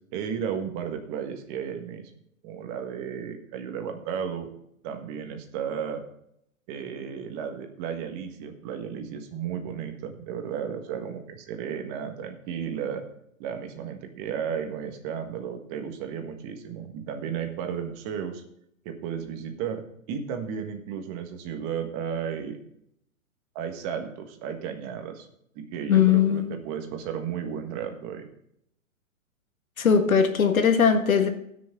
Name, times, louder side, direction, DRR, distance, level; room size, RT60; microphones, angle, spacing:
voice 1, 0.1-2.1 2.4-4.5 4.8-6.0 6.7-13.0 13.4-18.4 18.8-22.6 23.5-25.3 25.5-28.3, right 7 dB, 30° right, 1.5 m, -34 dB
voice 2, 25.9-26.4 29.8-31.3, left 7 dB, 80° left, 1.7 m, -20 dB
19.0 x 6.4 x 3.7 m
hypercardioid pair, 135°, 41 cm